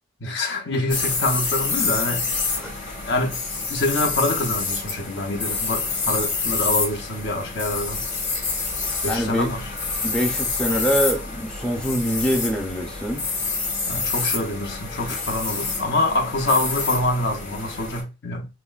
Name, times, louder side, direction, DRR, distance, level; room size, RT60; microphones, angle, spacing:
voice 1, 0.2-2.3 3.1-3.4 3.7-8.0 9.0-9.6 13.9-18.5, left 2 dB, 65° left, 0.9 m, -25 dB
sound 1, 0.9-18.0, left 4 dB, 45° left, 1.6 m, -27 dB
voice 2, 9.1-9.5 10.0-13.3, equal, 5° left, 0.5 m, -24 dB
5.9 x 2.2 x 2.4 m
head